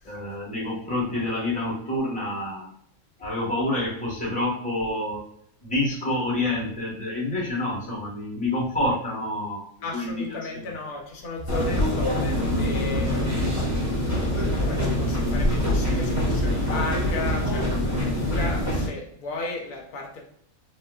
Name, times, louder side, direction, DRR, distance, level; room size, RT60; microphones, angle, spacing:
voice 1, 0.0-2.7 3.2-5.2 5.6-9.6 9.9-10.7, left 1 dB, 5° left, 1.0 m, -28 dB
voice 2, 9.8-20.2, left 3 dB, 80° left, 1.2 m, -35 dB
sound 1, 11.5-18.9, left 1 dB, 20° right, 0.5 m, -24 dB
4.0 x 2.4 x 2.2 m
omnidirectional pair, 1.5 m